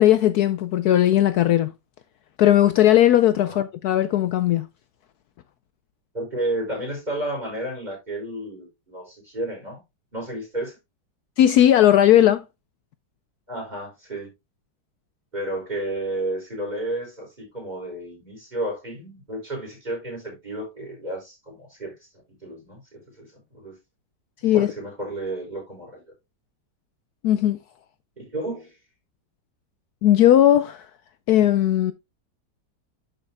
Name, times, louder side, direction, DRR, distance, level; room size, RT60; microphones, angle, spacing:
voice 1, 0.0-1.7 2.4-4.7 11.4-12.4 24.4-24.7 27.2-27.6 30.0-30.8 31.3-31.9, left 12 dB, 70° left, 1.0 m, -17 dB
voice 2, 6.1-9.8 10.1-10.8 13.5-14.3 15.3-21.9 22.4-23.3 23.5-23.8 24.5-26.0 28.2-28.8, right 1 dB, 25° right, 6.0 m, -32 dB
11.5 x 6.7 x 2.2 m
omnidirectional pair, 1.8 m